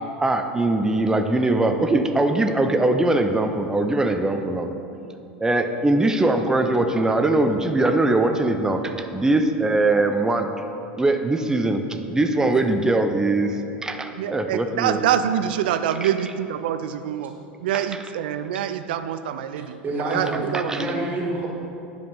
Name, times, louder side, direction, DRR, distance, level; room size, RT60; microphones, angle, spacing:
voice 1, 0.0-4.7 5.4-10.6 11.0-11.8 12.1-15.0 20.5-20.9, right 2 dB, 10° right, 6 dB, 0.6 m, -21 dB
voice 2, 14.2-20.8, right 10 dB, 65° right, 10 dB, 0.4 m, -26 dB
voice 3, 19.8-20.4 20.7-21.5, right 2 dB, 30° right, -1 dB, 1.9 m, -27 dB
9.3 x 5.1 x 5.5 m, 2.7 s
figure-of-eight pair, 85°, 6 cm